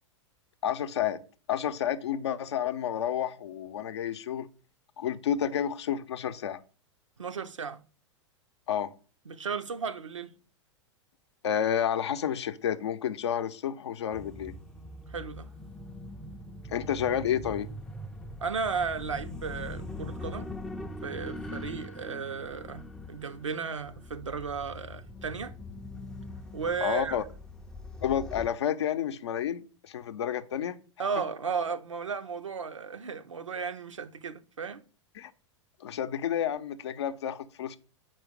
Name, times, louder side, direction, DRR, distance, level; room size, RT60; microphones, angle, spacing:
voice 1, 0.6-1.2 1.5-4.5 5.0-6.6 8.7-8.9 11.4-14.5 16.7-17.7 26.8-27.2 28.0-30.8 35.2-35.3 35.8-37.8, left 9 dB, 60° left, 0.6 m, -30 dB
voice 2, 7.2-7.8 9.3-10.3 15.1-15.5 18.4-20.5 21.0-25.5 26.5-27.2 31.0-34.8, right 5 dB, 75° right, 0.6 m, -34 dB
sound 1, 14.1-28.5, left 1 dB, 5° left, 0.4 m, -42 dB
5.0 x 4.5 x 6.1 m
figure-of-eight pair, 95°, 16 cm